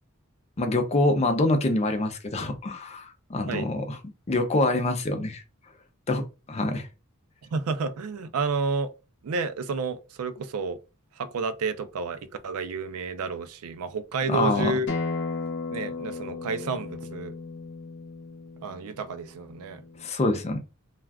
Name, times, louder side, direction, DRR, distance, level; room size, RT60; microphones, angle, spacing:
voice 1, 0.6-4.0 4.3-5.4 6.1-6.2 6.5-6.9 14.3-14.7 20.0-20.6, left 2 dB, 30° left, 0.5 m, -25 dB
voice 2, 7.5-8.9 9.2-10.8 11.2-14.9 15.7-17.3 18.6-19.8, right 4 dB, 85° right, 0.4 m, -30 dB
Acoustic guitar, 14.9-20.1, left 3 dB, 55° left, 0.8 m, -35 dB
2.4 x 2.3 x 3.3 m
head